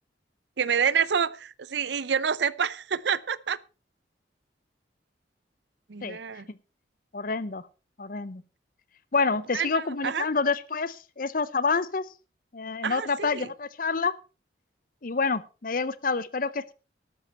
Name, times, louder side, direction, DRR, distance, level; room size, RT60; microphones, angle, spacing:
voice 1, 0.6-3.6 5.9-6.5 9.5-10.3 12.8-13.5, right 7 dB, 75° right, 19 dB, 0.6 m, -28 dB
voice 2, 7.1-7.6 8.0-8.4 9.1-12.1 12.5-14.1 15.0-16.7, left 4 dB, 50° left, 18 dB, 0.7 m, -28 dB
13.0 x 12.0 x 4.2 m, 0.32 s
head